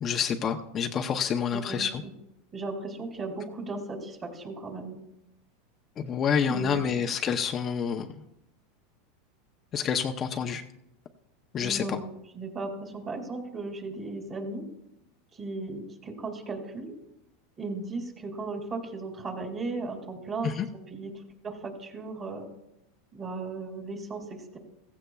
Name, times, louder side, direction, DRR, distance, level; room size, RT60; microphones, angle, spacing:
voice 1, 0.0-2.0 6.0-8.1 9.7-10.6 11.5-11.8 20.4-20.7, left 7 dB, 30° left, 4 dB, 0.7 m, -28 dB
voice 2, 1.5-2.1 2.5-5.0 6.5-6.9 11.6-14.6 15.3-16.9 17.6-20.5 20.9-21.1 21.4-22.5 23.1-24.6, right 3 dB, 25° right, 4 dB, 2.4 m, -36 dB
15.5 x 15.5 x 2.3 m, 0.85 s
supercardioid pair, 140°, 0 cm